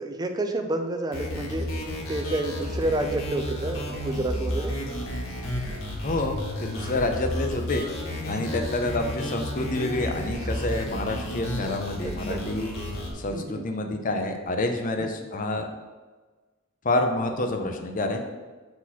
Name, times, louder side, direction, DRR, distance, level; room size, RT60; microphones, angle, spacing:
voice 1, 0.0-1.7 2.1-4.7 6.8-7.0 8.3-8.4 10.4-10.6 12.0-12.4 13.3-13.6 15.0-15.1, right 1 dB, 20° right, 6 dB, 0.4 m, -30 dB
sound 1, 1.1-13.1, equal, 85° left, 1.5 m, -32 dB
voice 2, 6.0-7.8 8.3-12.7 13.1-15.7 16.8-18.2, left 2 dB, 40° left, 4 dB, 0.6 m, -28 dB
4.8 x 4.2 x 5.6 m, 1.3 s
head